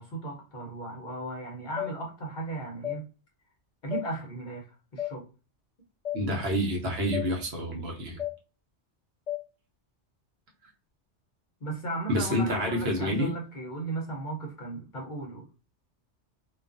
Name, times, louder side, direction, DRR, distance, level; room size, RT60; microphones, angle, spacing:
voice 1, 0.0-3.1 3.8-4.7 4.9-5.3 11.6-15.5, right 2 dB, 50° left, 0.7 m, -36 dB
sound 1, 1.8-1.9 2.8-3.0 3.9-4.1 5.0-5.1 6.1-6.2 7.1-7.3 8.2-8.4 9.3-9.4, left 12 dB, 90° left, 1.0 m, -32 dB
voice 2, 6.1-8.2 12.1-13.3, equal, 65° right, 0.9 m, -28 dB
2.4 x 2.3 x 2.4 m
omnidirectional pair, 1.2 m